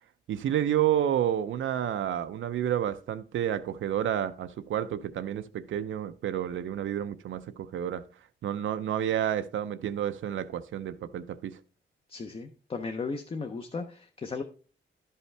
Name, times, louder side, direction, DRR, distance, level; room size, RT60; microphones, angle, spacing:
voice 1, 0.3-8.0 8.4-11.6, right 10 dB, 75° right, 0.5 m, -30 dB
voice 2, 12.1-14.4, left 4 dB, 30° left, 0.5 m, -36 dB
12.0 x 5.5 x 3.3 m
wide cardioid pair, 175°, 20 cm